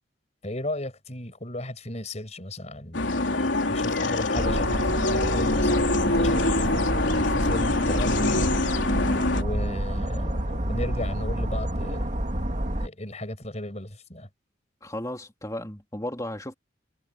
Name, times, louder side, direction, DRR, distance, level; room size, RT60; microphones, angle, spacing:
voice 1, 0.4-8.5 9.3-12.1 12.8-14.3, left 1 dB, 35° left, 6.1 m, -35 dB
sound 1, 2.9-9.4, left 2 dB, 90° left, 3.6 m, -24 dB
sound 2, 4.4-12.9, right 1 dB, 40° right, 2.2 m, -29 dB
voice 2, 14.8-16.5, left 1 dB, 20° left, 3.0 m, -34 dB
head